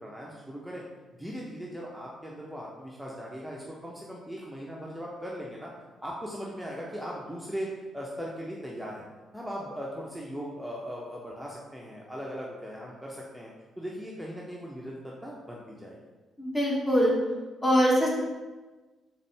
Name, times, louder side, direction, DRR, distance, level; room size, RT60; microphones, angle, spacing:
voice 1, 0.0-0.8 1.2-5.7 6.0-9.1 9.3-13.5 13.8-16.0, equal, 5° right, -4 dB, 0.7 m, -39 dB
voice 2, 16.4-17.1 17.6-18.1, equal, 25° left, -3 dB, 1.3 m, -23 dB
4.1 x 3.5 x 3.3 m, 1.2 s
figure-of-eight pair, 40°, 0 cm